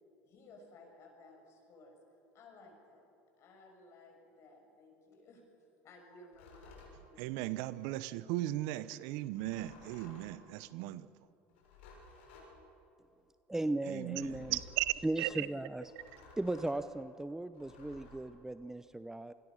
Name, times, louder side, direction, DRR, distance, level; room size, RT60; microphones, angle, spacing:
voice 1, 0.2-2.0 2.3-3.1 3.4-5.4 5.8-7.2, left 2 dB, 50° left, 2 dB, 7.0 m, -57 dB
sound 1, 6.3-6.9 9.3-10.4 11.5-12.5 14.2-14.9 15.8-16.8 17.5-18.2, left 3 dB, 85° left, 6.9 m, -55 dB
voice 2, 7.2-11.1 13.8-15.5, right 16 dB, 70° right, 16 dB, 0.8 m, -37 dB
voice 3, 13.5-14.6 15.0-15.8 16.4-19.3, right 2 dB, 10° right, 13 dB, 0.6 m, -37 dB
27.0 x 21.5 x 6.5 m, 2.7 s
hypercardioid pair, 90°, 6 cm